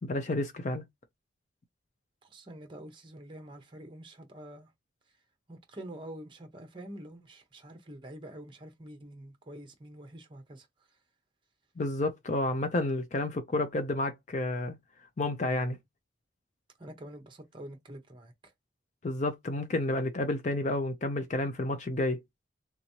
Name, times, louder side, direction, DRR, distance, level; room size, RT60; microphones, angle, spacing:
voice 1, 0.0-0.8 11.8-14.8 15.2-15.8 19.0-22.2, left 2 dB, 40° left, 0.5 m, -30 dB
voice 2, 2.2-4.7 5.5-11.0 16.8-18.5, right 1 dB, 25° right, 0.8 m, -47 dB
3.4 x 3.0 x 2.7 m
head